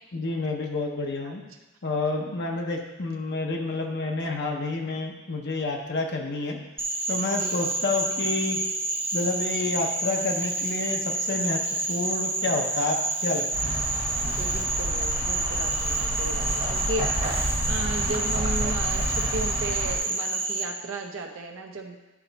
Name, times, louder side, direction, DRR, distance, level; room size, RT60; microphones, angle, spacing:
voice 1, 0.1-1.4 1.8-6.6 7.1-8.6 9.1-11.6 11.9-13.8, left 3 dB, 55° left, 1 dB, 0.8 m, -29 dB
Frog, 6.8-20.6, right 2 dB, 10° right, 0.6 m, -29 dB
sound 1, 13.5-20.0, right 1 dB, 40° right, 1.2 m, -30 dB
voice 2, 14.3-22.0, right 2 dB, 70° right, 2 dB, 0.7 m, -35 dB
11.0 x 4.3 x 4.0 m, 1.1 s
head